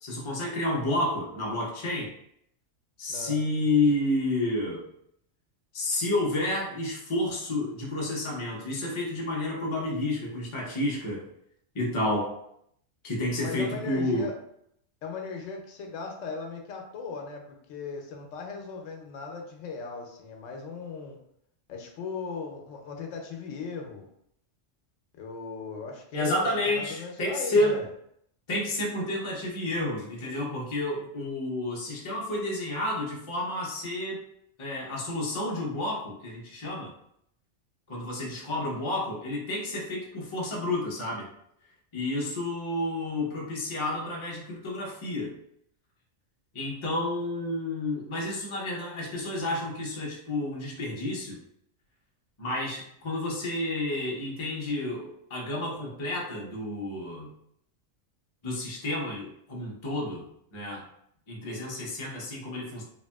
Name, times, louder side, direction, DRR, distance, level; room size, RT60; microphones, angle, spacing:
voice 1, 0.0-2.1 3.0-4.8 5.7-11.3 11.7-12.3 13.0-14.3 26.1-27.8 28.5-34.2 34.6-36.9 37.9-41.3 41.9-45.4 46.5-51.4 52.4-57.3 58.4-60.8 61.3-62.8, left 1 dB, 30° left, -3 dB, 0.6 m, -30 dB
voice 2, 3.1-3.4 13.4-14.3 15.0-21.2 21.7-24.1 25.1-27.9, left 5 dB, 90° left, 2 dB, 1.0 m, -38 dB
2.9 x 2.6 x 2.2 m, 0.70 s
omnidirectional pair, 1.3 m